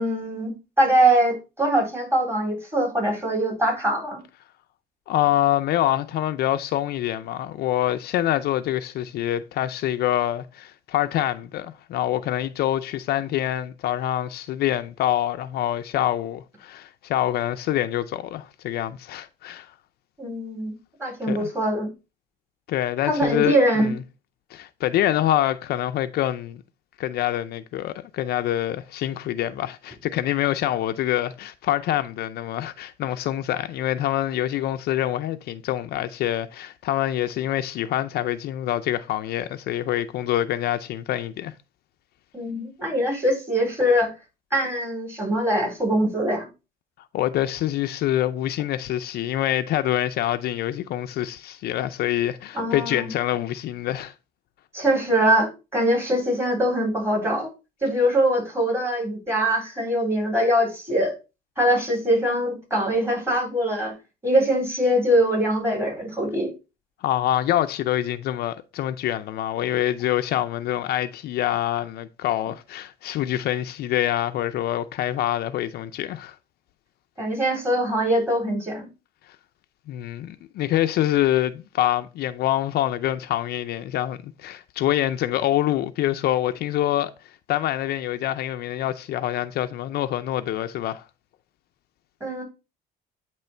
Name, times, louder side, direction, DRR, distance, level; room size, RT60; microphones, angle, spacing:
voice 1, 0.0-4.2 20.2-21.9 23.1-23.9 42.3-44.1 44.5-46.5 52.5-53.1 54.7-57.5 57.8-61.1 61.6-63.9 64.2-66.5 77.2-78.9 92.2-92.4, right 1 dB, 15° right, 4.0 m, -23 dB
voice 2, 5.1-19.7 21.3-21.5 22.7-24.0 24.5-26.6 27.0-41.5 47.1-54.1 67.0-76.4 79.9-87.1 87.5-91.0, left 13 dB, 70° left, 0.5 m, -25 dB
9.0 x 3.1 x 4.3 m
cardioid pair, 110°, 17 cm